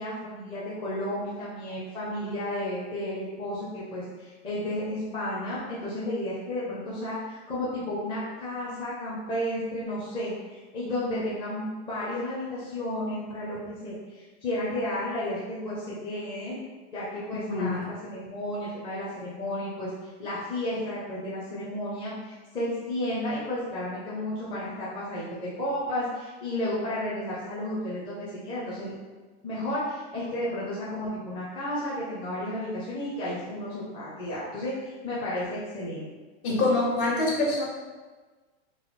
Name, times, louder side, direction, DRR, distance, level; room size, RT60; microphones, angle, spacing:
voice 1, 0.0-16.6 16.9-19.9 20.2-29.0 29.4-36.0, left 1 dB, 15° left, -8 dB, 0.6 m, -32 dB
voice 2, 36.4-37.7, left 2 dB, 55° left, -5 dB, 1.4 m, -25 dB
4.0 x 2.4 x 4.1 m, 1.3 s
supercardioid pair, 160°, 32 cm